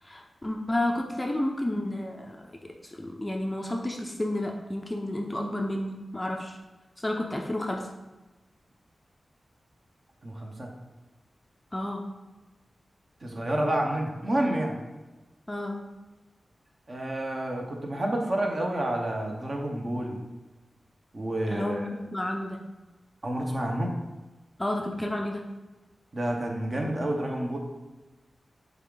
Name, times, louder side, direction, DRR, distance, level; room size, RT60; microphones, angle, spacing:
voice 1, 0.0-6.6 7.0-7.9 11.7-12.0 15.5-15.8 21.5-22.6 24.6-25.4, left 1 dB, 15° left, 1 dB, 0.5 m, -31 dB
voice 2, 10.2-10.7 13.2-14.8 16.9-20.2 21.1-21.9 23.2-24.0 26.1-27.6, right 1 dB, 35° right, 1 dB, 1.0 m, -29 dB
8.4 x 3.6 x 3.9 m, 1.1 s
wide cardioid pair, 150°, 0 cm